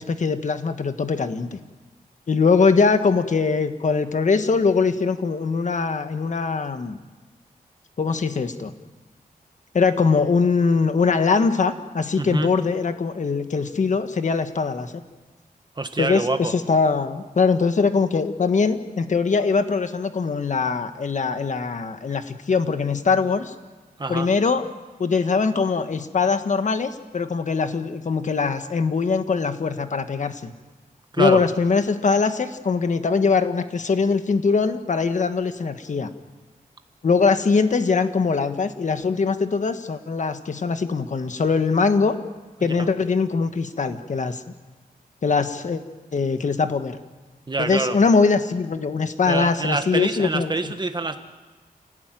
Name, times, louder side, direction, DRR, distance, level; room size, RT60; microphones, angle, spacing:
voice 1, 0.0-1.6 2.3-7.0 8.0-8.7 9.7-14.9 16.0-23.5 24.1-24.6 25.0-30.5 31.2-36.1 37.0-42.2 42.6-44.4 45.2-45.8 46.1-47.0 47.6-50.5, left 4 dB, 55° left, 8 dB, 1.5 m, -22 dB
voice 2, 12.2-12.5 15.7-16.5 24.0-24.3 31.1-31.4 42.6-42.9 47.5-48.0 49.3-51.2, right 3 dB, 30° right, 7 dB, 1.7 m, -26 dB
28.0 x 18.0 x 9.3 m, 1.3 s
wide cardioid pair, 130°, 15 cm